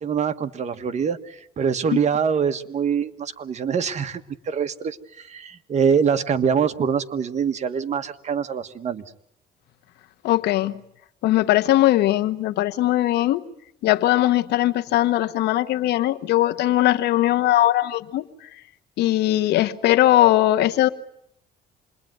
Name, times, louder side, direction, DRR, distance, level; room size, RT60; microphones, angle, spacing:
voice 1, 0.0-9.0, right 7 dB, 40° right, 8 dB, 1.6 m, -24 dB
voice 2, 10.2-10.8 11.2-13.4 13.8-18.3 19.0-20.9, left 14 dB, 80° left, 11 dB, 1.2 m, -20 dB
27.5 x 21.5 x 9.4 m, 0.73 s
cardioid pair, 110°, 17 cm